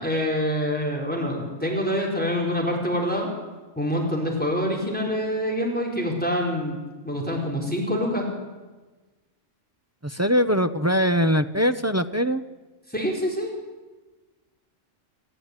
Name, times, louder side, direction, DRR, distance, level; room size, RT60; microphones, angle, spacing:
voice 1, 0.0-3.3 3.8-8.3 12.9-13.5, equal, 5° left, -1 dB, 4.6 m, -26 dB
voice 2, 10.0-12.4, equal, 15° right, 9 dB, 0.6 m, -22 dB
26.5 x 15.0 x 9.8 m, 1.2 s
omnidirectional pair, 1.3 m